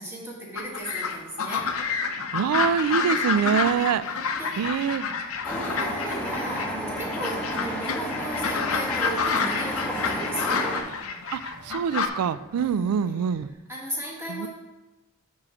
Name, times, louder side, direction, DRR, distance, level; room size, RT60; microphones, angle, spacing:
voice 1, 0.0-1.8 3.4-3.8 4.4-4.5 5.4-10.7 12.5-12.9 13.7-14.5, right 1 dB, 10° right, -3 dB, 1.6 m, -36 dB
sound 1, 0.5-6.7 7.0-12.1, left 5 dB, 65° left, 0.6 m, -29 dB
sound 2, 1.5-13.5, right 1 dB, 60° right, 1.2 m, -51 dB
voice 2, 2.3-4.0 4.6-5.1 11.3-13.5 14.3-14.5, right 7 dB, 90° right, 17 dB, 0.3 m, -25 dB
sound 3, 5.4-10.8, equal, 5° left, 0.8 m, -31 dB
5.5 x 5.0 x 6.3 m, 1.1 s
head